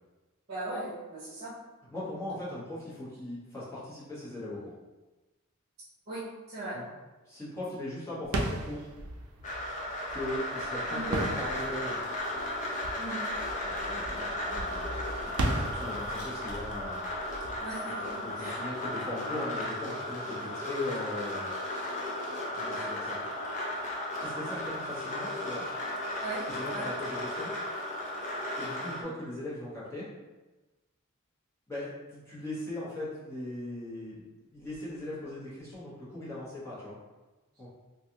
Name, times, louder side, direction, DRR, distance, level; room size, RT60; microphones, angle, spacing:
voice 1, 0.5-1.5 6.1-6.8 10.9-11.1 13.0-13.2 17.6-18.6 26.2-26.4 26.7-26.8, right 2 dB, 45° right, -8 dB, 0.8 m, -38 dB
voice 2, 1.9-4.7 6.7-6.9 7.2-8.9 10.1-12.0 13.6-17.1 18.2-21.5 22.5-23.2 24.2-25.6 26.5-27.5 28.6-30.1 31.7-37.0 37.6-37.7, left 1 dB, 15° left, -10 dB, 1.2 m, -39 dB
sound 1, 8.2-18.8, right 1 dB, 75° right, 0.5 m, -37 dB
sound 2, 9.4-29.0, left 1 dB, 35° left, 0.6 m, -35 dB
3.2 x 2.4 x 2.8 m, 1.2 s
head